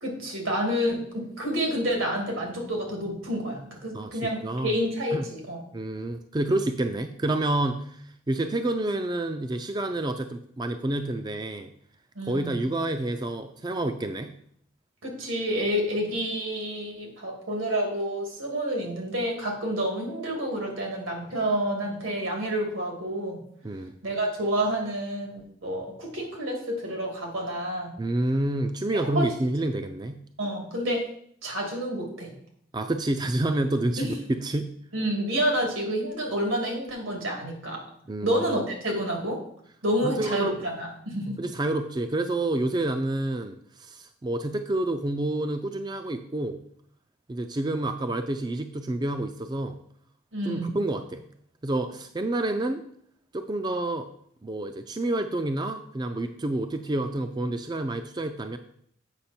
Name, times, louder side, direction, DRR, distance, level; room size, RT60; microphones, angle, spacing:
voice 1, 0.0-5.6 12.2-12.6 15.0-23.4 24.0-27.9 28.9-29.3 30.4-31.0 31.4-32.3 34.0-34.1 34.9-37.8 38.2-39.4 39.8-41.4 50.3-50.8, equal, 85° right, 1 dB, 2.4 m, -29 dB
voice 2, 3.9-4.7 5.1-5.3 5.7-11.7 12.3-14.3 23.6-23.9 28.0-30.2 32.7-34.7 38.1-38.4 40.0-40.5 41.4-46.6 47.3-49.8 50.4-51.3 51.6-52.8 53.3-54.1 54.4-58.6, right 2 dB, 20° right, 8 dB, 0.4 m, -28 dB
8.1 x 6.0 x 4.3 m, 0.66 s
head